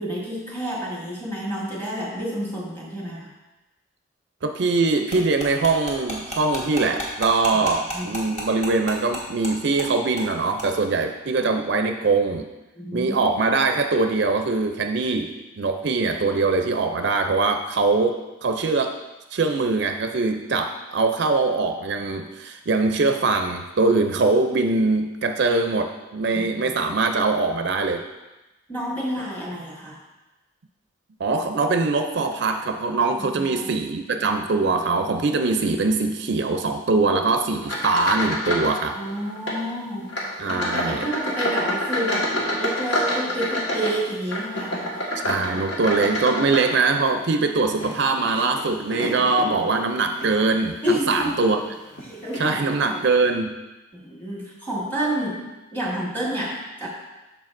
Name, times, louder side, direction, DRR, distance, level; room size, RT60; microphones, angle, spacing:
voice 1, 0.0-3.3 7.5-7.6 7.9-8.2 12.7-13.3 26.3-26.7 28.7-30.0 33.2-33.7 39.0-40.2 40.5-44.9 45.4-45.5 48.2-48.3 49.4-49.5 50.8-51.3 52.0-53.0 53.9-56.9, right 1 dB, 10° left, -5 dB, 1.5 m, -29 dB
voice 2, 4.4-12.5 12.9-18.9 19.3-28.0 31.2-38.9 40.4-41.1 45.2-51.6 52.4-53.6, right 3 dB, 55° right, 6 dB, 0.4 m, -22 dB
sound 1, 5.1-9.5 9.8-9.9 10.2-10.3 10.6-10.7, equal, 35° left, 1.4 m, -31 dB
Rats Gnawing Scratching Squeaking and Scuttling, 37.6-38.8 39.0-39.6 40.1-47.2 47.7-49.5 50.1-50.4 50.9-51.0 51.9-52.0 52.3-52.5, left 1 dB, 65° left, 1.6 m, -28 dB
13.0 x 4.7 x 2.6 m, 1.1 s
head